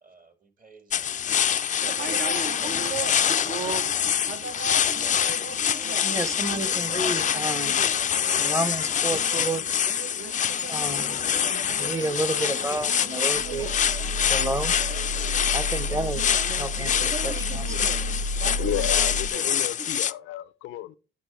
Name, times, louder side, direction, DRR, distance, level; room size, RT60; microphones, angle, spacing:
voice 1, 0.0-2.4, right 4 dB, 45° right, 2.0 m, -56 dB
sound 1, 0.9-20.1, left 9 dB, 40° left, 0.4 m, -26 dB
sound 2, 1.8-20.0, right 4 dB, 60° right, 1.2 m, -38 dB
voice 2, 6.0-7.8 8.4-9.6 10.7-11.2 11.8-13.7 14.2-14.7 15.5-16.2 16.5-17.9, right 2 dB, 15° right, 0.9 m, -30 dB
sound 3, 13.3-19.3, left 1 dB, 80° right, 1.2 m, -31 dB
voice 3, 18.3-21.0, left 13 dB, 90° left, 0.5 m, -33 dB
9.5 x 6.0 x 3.2 m
cardioid pair, 90°, 20 cm